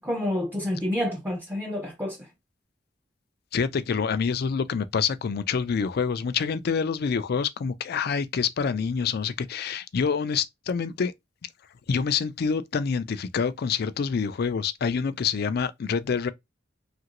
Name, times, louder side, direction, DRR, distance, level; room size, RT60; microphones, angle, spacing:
voice 1, 0.0-2.2, left 1 dB, 10° right, 0.5 m, -28 dB
voice 2, 3.5-11.1 11.9-16.3, left 6 dB, 55° left, 0.4 m, -27 dB
2.9 x 2.5 x 2.9 m
head